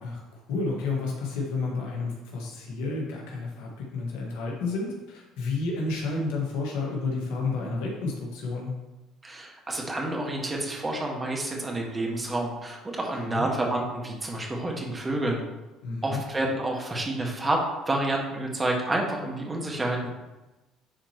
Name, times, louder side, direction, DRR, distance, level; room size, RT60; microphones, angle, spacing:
voice 1, 0.5-8.7 13.2-13.5 15.8-16.2, left 3 dB, 80° left, -2 dB, 1.7 m, -31 dB
voice 2, 9.2-15.4 16.0-17.6 17.9-20.1, right 1 dB, 25° right, 0 dB, 1.8 m, -29 dB
9.5 x 4.3 x 3.1 m, 1.1 s
supercardioid pair, 75°, 0 cm